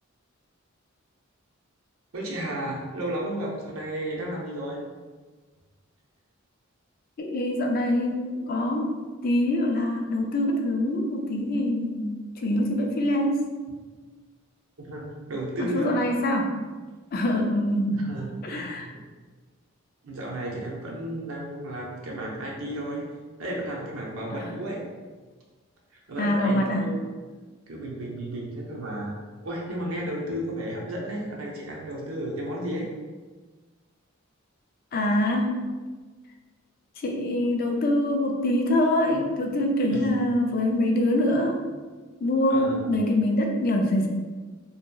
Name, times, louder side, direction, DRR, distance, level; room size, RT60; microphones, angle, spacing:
voice 1, 2.1-4.8 14.8-15.9 17.9-18.8 20.0-23.0 23.4-24.8 25.9-27.0 27.7-32.9 39.9-40.0 42.5-42.9, right 1 dB, 80° right, -2 dB, 0.7 m, -33 dB
voice 2, 7.2-8.9 9.2-13.5 15.6-16.5 17.1-18.0 18.4-18.9 24.3-24.6 26.2-26.9 34.9-35.6 37.0-41.6 42.2-44.1, left 1 dB, 45° left, 2 dB, 0.3 m, -24 dB
2.9 x 2.6 x 2.2 m, 1.4 s
head